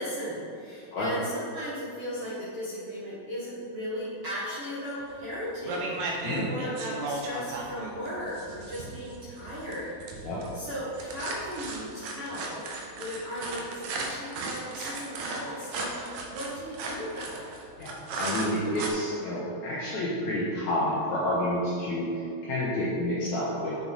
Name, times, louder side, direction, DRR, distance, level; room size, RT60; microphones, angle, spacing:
voice 1, 0.0-12.6 12.9-17.5, equal, 55° right, -9 dB, 1.8 m, -36 dB
sound 1, 5.1-5.3 5.7-18.9, right 3 dB, 75° right, 2.8 m, -36 dB
voice 2, 17.8-23.7, left 1 dB, 70° left, -7 dB, 1.9 m, -29 dB
7.7 x 7.3 x 4.0 m, 2.7 s
omnidirectional pair, 4.6 m